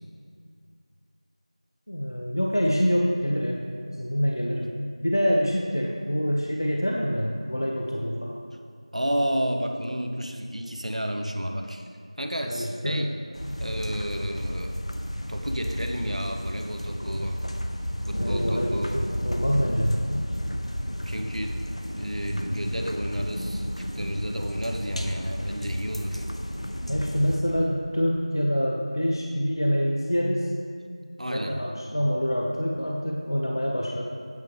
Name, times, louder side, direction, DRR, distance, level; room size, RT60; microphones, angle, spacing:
voice 1, 1.9-3.6 4.0-4.7 5.0-8.4 12.4-13.1 18.2-18.8 19.2-20.0 26.9-30.5 31.3-34.0, equal, 40° left, -1 dB, 0.6 m, -26 dB
voice 2, 8.9-11.8 12.2-13.1 13.6-14.7 15.3-17.4 18.1-19.0 20.9-21.6 21.9-23.7 23.9-26.2 31.2-31.6, equal, 80° right, 4 dB, 1.1 m, -31 dB
sound 1, 13.3-27.4, equal, 65° left, 0.9 m, -32 dB
9.0 x 6.0 x 5.5 m, 2.2 s
figure-of-eight pair, 180°, 4 cm